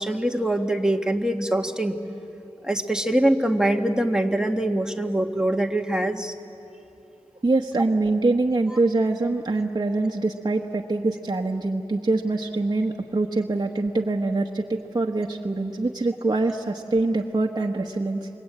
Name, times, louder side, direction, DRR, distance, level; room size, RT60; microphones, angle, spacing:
voice 1, 0.0-2.0 2.6-6.3, right 1 dB, 5° right, 3 dB, 1.8 m, -23 dB
voice 2, 7.4-18.3, right 2 dB, 40° right, 1 dB, 1.2 m, -24 dB
28.5 x 23.5 x 9.0 m, 2.9 s
wide cardioid pair, 70°, 11 cm